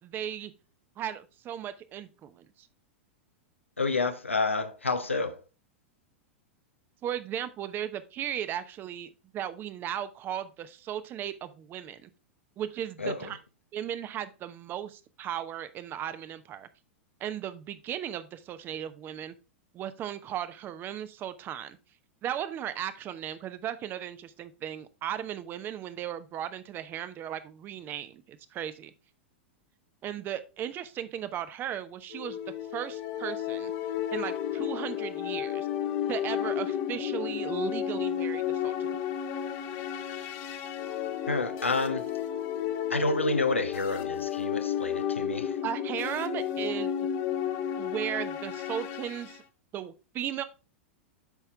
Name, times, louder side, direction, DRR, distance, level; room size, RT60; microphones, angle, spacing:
voice 1, 0.0-0.5 1.0-2.5 7.0-12.1 12.6-13.4 13.7-16.7 17.2-19.4 19.7-21.8 22.2-28.9 30.0-32.4 32.7-33.7 34.1-35.7 36.1-38.9 45.6-46.9 47.8-49.4 49.7-50.4, right 10 dB, 30° right, 0.8 m, -36 dB
voice 2, 3.8-5.4 13.0-13.3 41.3-42.0 42.9-45.6, left 3 dB, 90° left, 0.9 m, -29 dB
sound 1, 32.1-49.4, left 9 dB, 45° left, 1.1 m, -32 dB
8.2 x 5.7 x 3.3 m
figure-of-eight pair, 100°, 7 cm